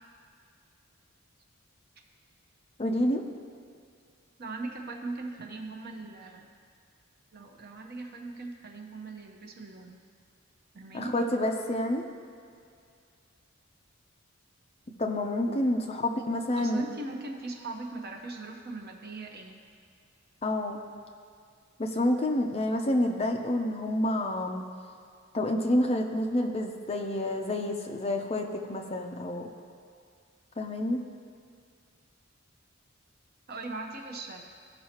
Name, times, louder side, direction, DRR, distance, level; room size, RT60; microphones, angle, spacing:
voice 1, 2.8-3.2 10.9-12.0 15.0-16.8 20.4-20.8 21.8-24.6 25.3-29.5 30.6-31.0, left 1 dB, 30° left, 3 dB, 0.6 m, -28 dB
voice 2, 4.4-6.5 7.3-10.0 10.7-11.1 16.6-19.6 33.5-34.4, right 2 dB, 50° right, 2 dB, 0.9 m, -39 dB
15.5 x 5.5 x 2.9 m, 2.3 s
head